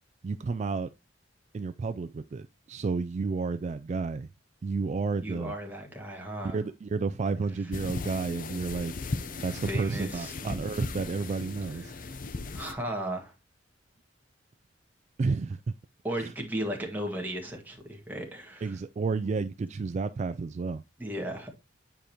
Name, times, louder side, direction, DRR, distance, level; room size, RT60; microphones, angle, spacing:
voice 1, 0.2-0.9 1.5-4.3 4.6-5.5 6.4-8.9 9.4-11.9 15.2-15.6 16.2-16.3 18.6-20.8, right 4 dB, 40° right, 0.3 m, -31 dB
voice 2, 5.2-6.6 9.7-10.6 11.7-12.2 12.5-13.3 16.0-18.8 21.0-21.5, right 1 dB, 10° right, 1.7 m, -36 dB
sound 1, 7.7-12.7, left 3 dB, 50° left, 0.6 m, -37 dB
9.1 x 5.0 x 2.9 m
head